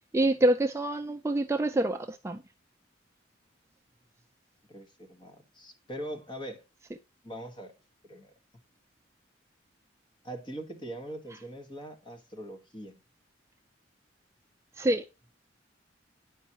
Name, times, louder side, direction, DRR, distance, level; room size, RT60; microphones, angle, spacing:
voice 1, 0.1-2.4 14.8-15.0, right 1 dB, 15° right, 0.4 m, -26 dB
voice 2, 4.7-6.6 7.2-7.7 8.0-8.3 10.2-13.0, right 1 dB, 25° left, 1.5 m, -42 dB
10.0 x 5.4 x 2.9 m
head